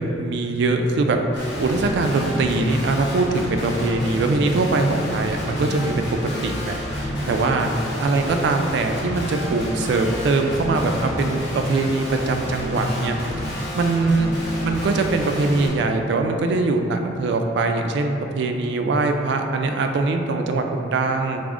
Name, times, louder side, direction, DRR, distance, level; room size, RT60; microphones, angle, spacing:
voice 1, 0.0-6.1 6.4-7.7 8.0-13.2 13.7-14.3 14.6-21.4, right 3 dB, 65° right, 5 dB, 0.3 m, -22 dB
Guitar, 1.4-15.7, equal, 65° left, 0.9 m, -29 dB
4.9 x 2.0 x 3.5 m, 2.7 s
head